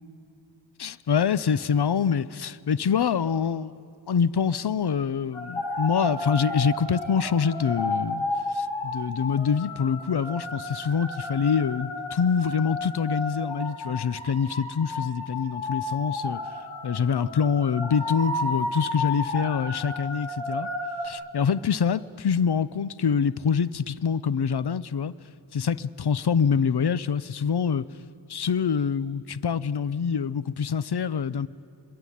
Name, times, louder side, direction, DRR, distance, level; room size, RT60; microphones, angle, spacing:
voice 1, 0.8-3.8 4.1-16.4 16.8-20.7 21.0-25.1 25.5-27.9 28.3-31.5, left 6 dB, 55° left, 0.7 m, -25 dB
sound 1, 5.3-21.1, left 2 dB, 90° left, 3.7 m, -32 dB
26.0 x 22.5 x 9.9 m
wide cardioid pair, 65°, 47 cm